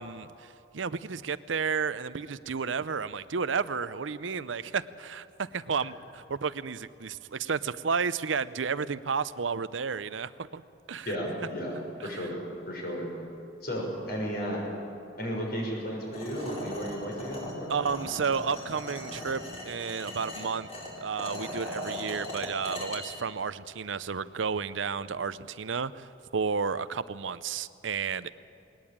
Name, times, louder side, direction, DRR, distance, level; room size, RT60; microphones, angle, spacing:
voice 1, 0.0-10.6 10.9-11.1 12.0-12.1 17.7-20.7 21.0-26.1 26.3-28.3, right 5 dB, 85° right, 15 dB, 0.7 m, -32 dB
voice 2, 11.1-11.8 12.0-12.4 12.7-13.1 13.6-14.6 15.2-17.7, equal, 55° left, -1 dB, 6.2 m, -33 dB
sound 1, 16.1-23.0, left 1 dB, 35° left, 4.2 m, -39 dB
20.5 x 19.5 x 8.8 m, 2.6 s
head